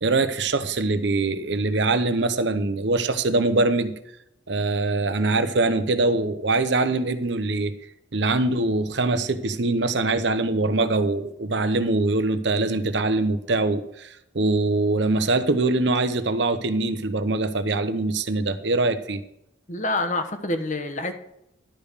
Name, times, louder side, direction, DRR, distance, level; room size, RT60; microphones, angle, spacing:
voice 1, 0.0-3.9 4.5-7.7 8.1-19.2, right 2 dB, 65° right, 11 dB, 0.8 m, -23 dB
voice 2, 19.7-21.1, left 2 dB, 40° left, 7 dB, 1.1 m, -27 dB
11.5 x 5.3 x 6.6 m, 0.80 s
head